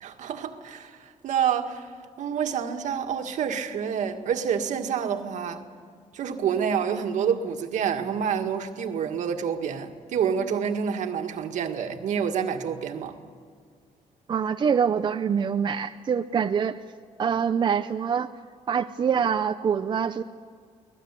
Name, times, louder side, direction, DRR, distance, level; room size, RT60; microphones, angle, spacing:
voice 1, 0.0-1.9 2.2-5.6 6.1-13.2, right 7 dB, 70° right, 1.9 m, -28 dB
voice 2, 14.3-16.8 17.2-18.3 18.7-20.2, right 7 dB, 35° right, 0.6 m, -25 dB
24.0 x 18.5 x 8.4 m
cardioid pair, 135°, 13 cm